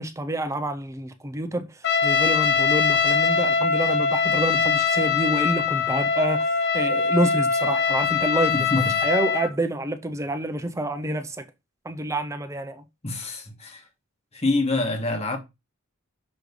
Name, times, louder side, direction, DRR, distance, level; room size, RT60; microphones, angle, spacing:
voice 1, 0.0-8.6 8.8-11.4 11.8-12.8, right 1 dB, 15° right, 0.5 m, -28 dB
Trumpet, 1.8-9.5, left 6 dB, 50° left, 0.7 m, -22 dB
voice 2, 8.5-8.9 13.0-13.8 14.3-15.4, left 2 dB, 30° left, 1.4 m, -26 dB
6.3 x 3.2 x 5.1 m
head